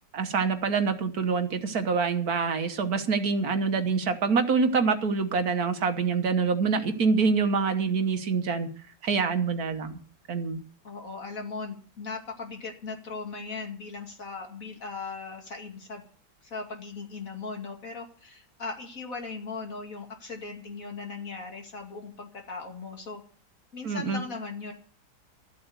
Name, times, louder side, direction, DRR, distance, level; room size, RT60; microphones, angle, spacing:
voice 1, 0.1-8.7 9.0-10.0 10.3-10.6 23.8-24.2, right 5 dB, 65° right, 8 dB, 1.6 m, -26 dB
voice 2, 10.8-16.0 16.4-23.2 23.7-24.7, left 4 dB, 55° left, 3 dB, 2.7 m, -38 dB
13.5 x 8.0 x 8.0 m, 0.43 s
omnidirectional pair, 1.8 m